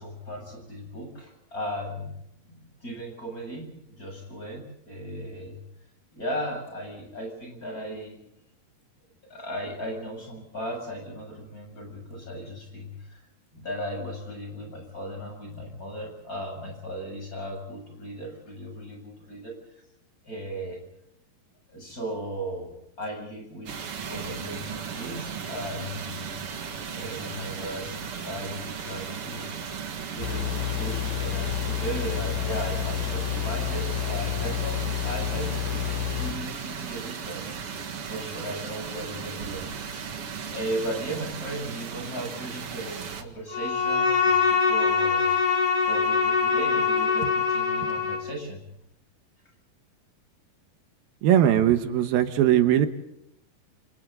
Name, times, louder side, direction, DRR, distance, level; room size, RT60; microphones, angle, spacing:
voice 1, 0.0-2.1 2.5-5.6 6.2-8.2 9.3-13.2 13.5-19.5 20.2-20.8 21.7-22.7 23.0-23.7 24.1-26.3 26.9-29.7 30.1-45.2 45.8-48.6, equal, 20° left, 2 dB, 8.0 m, -36 dB
sound 1, 23.7-43.2, right 6 dB, 45° right, 2.3 m, -36 dB
sound 2, 30.2-36.3, left 11 dB, 65° left, 5.7 m, -30 dB
Bowed string instrument, 43.5-48.3, left 5 dB, 40° left, 3.7 m, -23 dB
voice 2, 51.2-52.9, right 11 dB, 80° right, 8 dB, 3.0 m, -20 dB
29.5 x 28.5 x 4.0 m, 0.80 s
omnidirectional pair, 4.2 m